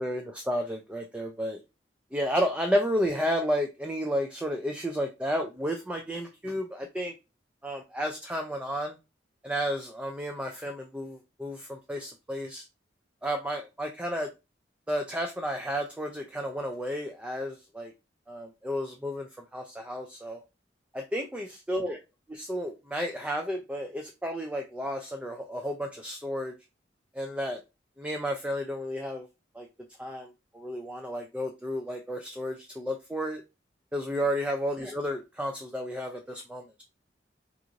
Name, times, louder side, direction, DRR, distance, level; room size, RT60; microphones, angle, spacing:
voice 1, 0.0-1.6 2.1-7.1 7.6-9.0 9.4-12.6 13.2-14.3 14.9-17.9 18.3-20.4 20.9-22.0 22.3-26.6 27.1-27.6 28.0-29.3 29.5-29.7 30.0-33.4 33.9-36.8, equal, 5° right, 3 dB, 0.3 m, -32 dB
3.0 x 2.4 x 3.7 m, 0.27 s
head